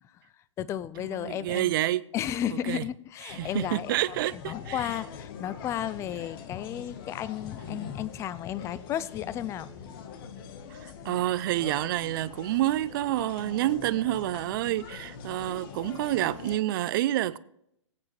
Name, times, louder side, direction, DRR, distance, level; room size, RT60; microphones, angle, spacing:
voice 1, 0.6-1.7 2.1-4.0 4.3-9.7, left 11 dB, 15° left, 0.4 m, -33 dB
voice 2, 1.1-2.0 2.7-2.8 3.3-4.9 10.7-17.4, right 14 dB, 45° right, 0.6 m, -28 dB
sound 1, 3.3-16.6, left 6 dB, 45° left, 1.4 m, -43 dB
20.5 x 8.6 x 3.3 m
hypercardioid pair, 130°, 16 cm